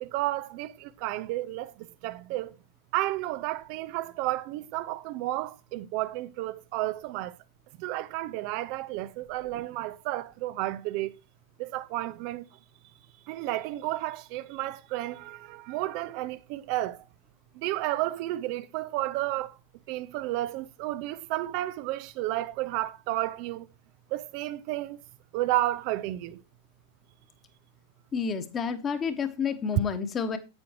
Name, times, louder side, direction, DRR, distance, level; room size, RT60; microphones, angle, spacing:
voice 1, 0.0-2.5 2.9-7.4 7.8-11.1 11.6-12.5 13.3-17.0 17.6-19.6 19.9-23.7 24.1-25.0 25.3-26.4, right 16 dB, 45° right, 0.5 m, -32 dB
voice 2, 28.1-30.4, left 6 dB, 25° left, 1.4 m, -29 dB
10.5 x 8.4 x 3.0 m
figure-of-eight pair, 90°, 0 cm